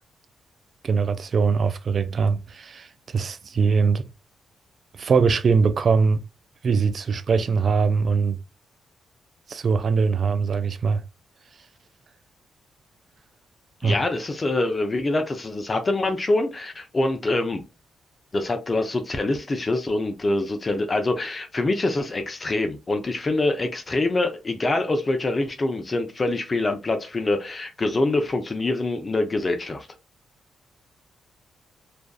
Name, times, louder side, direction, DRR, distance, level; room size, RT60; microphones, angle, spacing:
voice 1, 0.8-2.9 3.1-4.0 5.0-6.2 6.6-8.4 9.5-11.0 13.8-14.0, right 5 dB, 55° right, 0.3 m, -21 dB
voice 2, 13.8-17.6 18.3-29.9, left 2 dB, 35° left, 0.5 m, -25 dB
2.5 x 2.3 x 2.3 m
cardioid pair, 70°, 0 cm